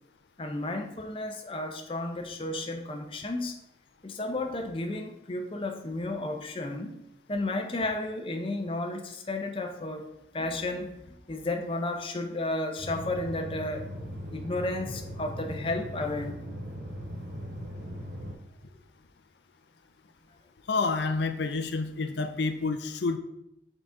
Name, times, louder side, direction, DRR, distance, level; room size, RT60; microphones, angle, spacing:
voice 1, 0.4-3.5 4.0-6.9 7.3-13.9 14.3-16.4, left 2 dB, 30° left, 4 dB, 0.6 m, -33 dB
sound 1, 12.8-18.3, equal, 75° right, 2.4 m, -39 dB
voice 2, 20.7-23.2, left 4 dB, 75° left, 7 dB, 0.5 m, -29 dB
5.8 x 3.9 x 4.9 m, 0.80 s
head